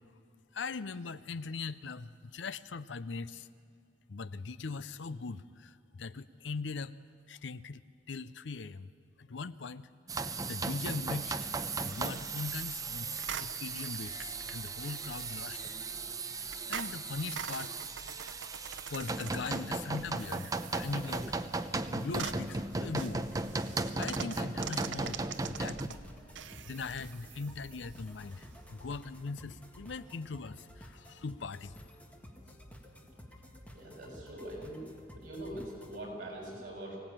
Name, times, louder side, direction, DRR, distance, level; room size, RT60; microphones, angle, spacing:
voice 1, 0.5-3.5 4.1-6.9 7.3-7.8 8.1-8.9 9.2-9.9 10.2-11.5 11.8-15.7 16.7-17.7 18.4-18.6 18.9-21.4 21.9-23.3 24.0-26.0 26.4-31.7, left 4 dB, 70° left, 16 dB, 0.6 m, -40 dB
sound 1, 10.1-25.9, right 3 dB, 20° right, 0.7 m, -37 dB
sound 2, 11.1-29.3, right 7 dB, 75° right, 0.8 m, -46 dB
sound 3, 20.8-36.0, equal, 10° left, 1.7 m, -53 dB
voice 2, 33.7-34.8 35.2-37.0, right 1 dB, 45° right, -1 dB, 7.0 m, -43 dB
24.0 x 17.0 x 8.9 m, 2.2 s
head